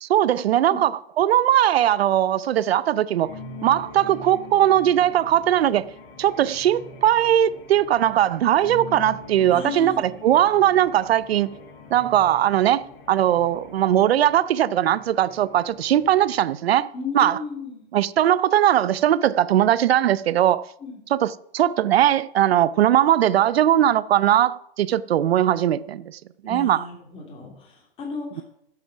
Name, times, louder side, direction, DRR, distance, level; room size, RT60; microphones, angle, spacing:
voice 1, 0.0-3.3 3.6-5.9 6.2-11.5 11.9-12.8 13.1-16.9 17.1-17.4 17.9-20.6 21.1-26.0 26.4-26.9, right 11 dB, 85° right, 0.7 m, -19 dB
sound 1, 3.2-16.5, left 2 dB, 65° left, 3.3 m, -43 dB
voice 2, 9.5-10.0 16.9-17.8 20.8-21.0 26.4-28.4, left 4 dB, 20° left, 2.9 m, -34 dB
15.0 x 7.9 x 5.9 m
hypercardioid pair, 160°, 30 cm